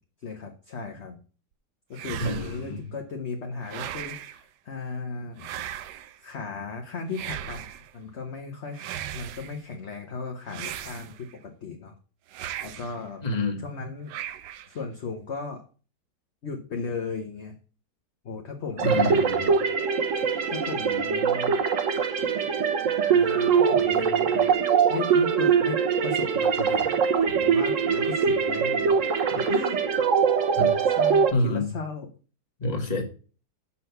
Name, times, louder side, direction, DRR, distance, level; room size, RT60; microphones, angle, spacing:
voice 1, 0.2-1.2 1.9-5.5 6.2-7.7 7.9-11.9 12.6-14.1 14.7-15.6 16.4-17.5 18.2-19.3 20.5-21.6 23.1-24.6 24.9-26.9 27.3-29.0 29.3-29.8 30.8-32.1, left 4 dB, 45° left, 1.1 m, -36 dB
sound 1, 1.9-2.7 3.6-4.4 5.4-6.2 7.1-7.9 8.7-9.6 10.5-11.4 12.3-13.0 14.1-14.8, right 11 dB, 85° right, 1.2 m, -37 dB
voice 2, 2.2-2.8 13.2-13.6 18.8-19.5 30.6-30.7 31.3-31.7 32.6-33.1, left 1 dB, 25° left, 1.5 m, -27 dB
sound 2, 18.8-31.3, right 6 dB, 55° right, 1.2 m, -23 dB
6.2 x 5.7 x 6.7 m
omnidirectional pair, 1.8 m